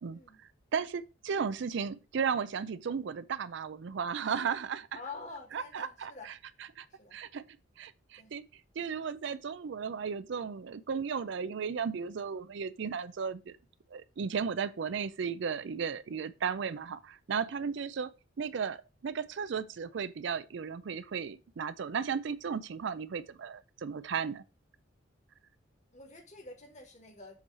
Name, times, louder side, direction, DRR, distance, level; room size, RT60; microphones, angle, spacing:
voice 1, 0.7-4.9 5.5-6.3 6.8-6.9 7.1-7.5 7.8-8.4 8.8-13.6 13.9-18.1 18.4-24.4, right 6 dB, 65° right, 0.4 m, -35 dB
voice 2, 4.9-6.3 6.9-7.2 8.2-8.3 25.9-27.4, left 3 dB, 40° left, 1.5 m, -47 dB
7.2 x 3.1 x 5.4 m
head